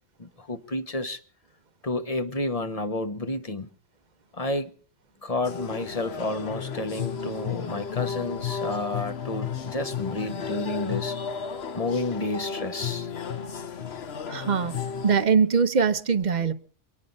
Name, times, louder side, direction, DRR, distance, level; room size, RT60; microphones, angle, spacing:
voice 1, 0.2-1.2 1.8-3.7 4.3-4.7 5.2-11.2 11.7-13.1, left 2 dB, 30° left, 1.1 m, -30 dB
sound 1, 5.4-15.3, left 6 dB, 60° left, 1.2 m, -33 dB
voice 2, 14.3-14.8 15.0-16.5, right 6 dB, 40° right, 0.9 m, -22 dB
24.0 x 9.6 x 5.3 m
omnidirectional pair, 1.3 m